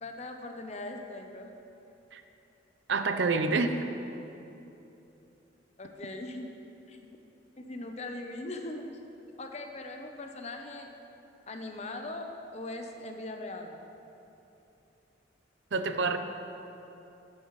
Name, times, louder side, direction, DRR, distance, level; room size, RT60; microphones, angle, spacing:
voice 1, 0.0-1.5 5.8-6.5 6.9-7.0 7.6-8.8 9.4-10.9 11.5-13.8, left 2 dB, 35° left, 4 dB, 0.7 m, -40 dB
voice 2, 2.9-3.7 15.7-16.2, right 4 dB, 80° right, 8 dB, 0.6 m, -27 dB
12.5 x 9.6 x 3.2 m, 2.9 s
head